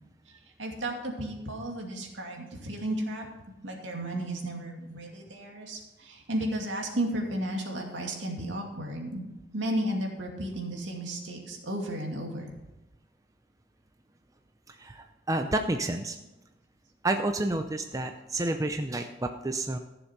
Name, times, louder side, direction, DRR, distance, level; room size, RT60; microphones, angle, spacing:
voice 1, 0.6-3.3 3.6-9.2 9.5-12.5, right 1 dB, 75° right, 1 dB, 2.4 m, -33 dB
voice 2, 14.8-16.2 17.0-19.8, right 2 dB, 20° right, 6 dB, 0.6 m, -30 dB
14.5 x 7.0 x 6.0 m, 0.98 s
head